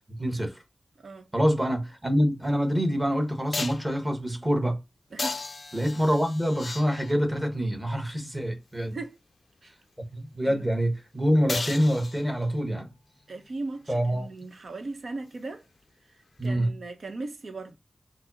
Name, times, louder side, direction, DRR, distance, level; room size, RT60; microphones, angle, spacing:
voice 1, 0.2-0.6 1.3-4.8 5.7-9.0 10.1-12.9 13.9-14.3 16.4-16.7, equal, 15° right, 1.2 m, -26 dB
sound 1, 2.4-2.5 3.5-3.9 5.2-7.3 11.5-12.6 16.4-16.5, left 3 dB, 45° left, 0.3 m, -35 dB
voice 2, 8.9-9.2 9.6-9.7 10.4-10.7 13.3-15.6 16.4-17.8, right 3 dB, 70° right, 0.8 m, -38 dB
4.9 x 2.0 x 2.7 m
wide cardioid pair, 95°, 0 cm